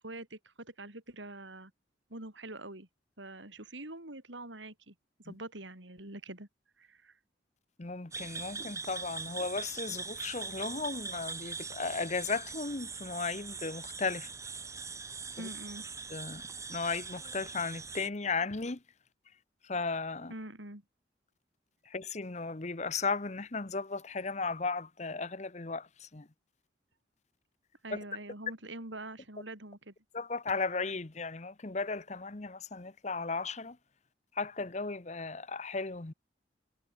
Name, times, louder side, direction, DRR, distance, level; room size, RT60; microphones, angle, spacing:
voice 1, 0.0-1.7 2.1-2.9 3.2-4.9 5.2-6.5 6.8-7.1 15.4-15.9 20.3-20.8 27.8-29.9, right 2 dB, 80° right, 5.7 m, -45 dB
voice 2, 7.8-14.3 15.4-15.5 16.1-16.4 16.7-18.8 19.6-20.3 21.9-26.3 27.9-28.0 30.1-33.8 34.3-36.1, left 4 dB, 35° left, 1.0 m, -35 dB
sound 1, 8.1-18.1, right 4 dB, 15° right, 2.4 m, -42 dB
head